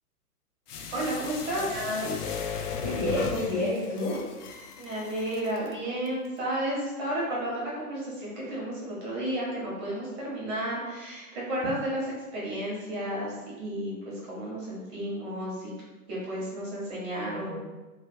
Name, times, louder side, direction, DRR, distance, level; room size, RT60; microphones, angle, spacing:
sound 1, 0.7-5.7 6.1-6.2, left 6 dB, 75° left, 0.6 m, -37 dB
voice 1, 0.9-1.8 4.8-15.7 16.1-17.6, right 1 dB, 30° right, -6 dB, 1.2 m, -32 dB
voice 2, 1.7-2.0 2.8-4.2 17.2-17.6, left 2 dB, 5° left, -12 dB, 0.7 m, -29 dB
3.3 x 2.3 x 3.1 m, 1.2 s
hypercardioid pair, 130°, 47 cm